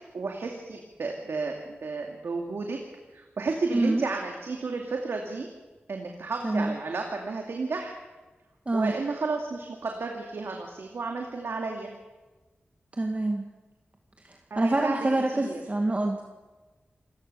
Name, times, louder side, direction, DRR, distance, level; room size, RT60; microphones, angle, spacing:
voice 1, 0.1-2.8 3.1-5.5 5.9-7.9 8.7-11.9 14.5-15.0 15.3-15.6, right 3 dB, 85° right, 2 dB, 2.5 m, -32 dB
voice 2, 3.7-4.0 6.4-6.8 8.7-8.9 13.0-13.5 14.2-16.2, right 2 dB, 35° right, 2 dB, 2.1 m, -26 dB
28.0 x 19.0 x 6.9 m, 1.2 s
wide cardioid pair, 70°, 4 cm